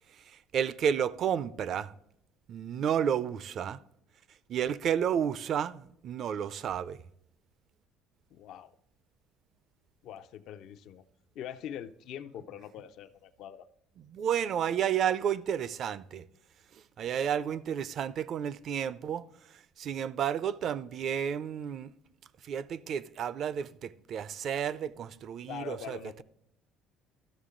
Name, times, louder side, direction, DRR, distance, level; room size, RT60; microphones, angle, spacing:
voice 1, 0.5-1.9 2.5-3.8 4.5-7.0 14.1-16.2 17.0-19.3 19.8-21.9 22.4-26.2, right 8 dB, 50° right, 0.4 m, -31 dB
voice 2, 8.3-8.7 10.0-11.0 11.3-13.7 25.5-26.2, left 9 dB, 65° left, 0.5 m, -43 dB
13.0 x 6.5 x 3.8 m
cardioid pair, 125°, 0 cm